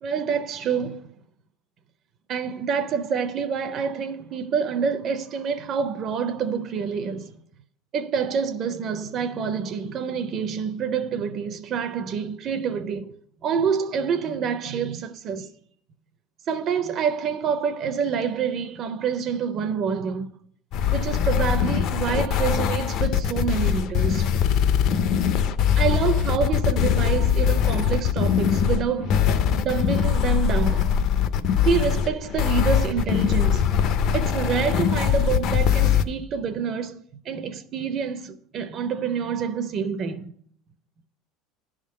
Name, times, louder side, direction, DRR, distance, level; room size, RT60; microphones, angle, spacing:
voice 1, 0.0-1.1 2.3-7.3 7.9-13.2 13.4-15.5 16.5-20.3 20.9-24.3 25.8-29.2 29.5-30.9 31.6-33.8 34.1-37.0 37.3-40.3, right 6 dB, 30° right, 0.4 m, -27 dB
sound 1, 20.7-36.0, left 8 dB, 40° left, 0.4 m, -22 dB
11.0 x 3.6 x 7.4 m
cardioid pair, 180°, 0 cm